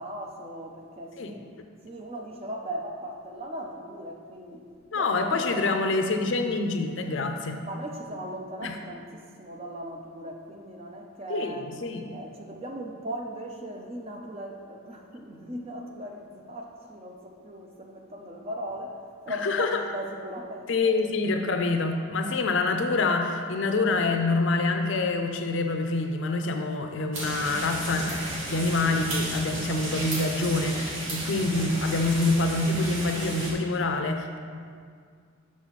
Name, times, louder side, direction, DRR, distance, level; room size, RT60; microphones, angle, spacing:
voice 1, 0.0-1.5 1.8-4.7 4.9-5.9 7.6-11.8 12.1-21.0 22.2-22.4, equal, 30° right, 2 dB, 0.6 m, -38 dB
voice 2, 4.9-7.6 8.6-8.8 11.3-12.0 19.3-19.8 20.7-34.4, left 3 dB, 60° left, 5 dB, 0.5 m, -26 dB
sound 1, 27.1-33.5, right 1 dB, 70° right, 1.5 m, -34 dB
6.1 x 6.0 x 4.1 m, 2.1 s
head